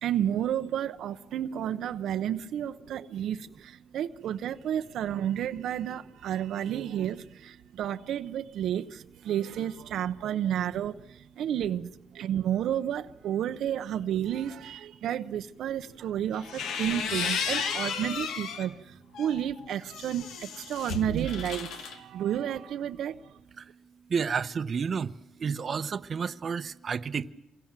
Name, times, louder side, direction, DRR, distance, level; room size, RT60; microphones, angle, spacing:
voice 1, 0.0-23.3, right 10 dB, 85° right, 0.9 m, -31 dB
sound 1, 16.3-18.7 19.1-22.0, left 6 dB, 90° left, 2.2 m, -33 dB
voice 2, 24.1-25.1 25.4-27.3, right 6 dB, 55° right, 1.0 m, -30 dB
28.0 x 22.0 x 7.5 m
cardioid pair, 75°, 0 cm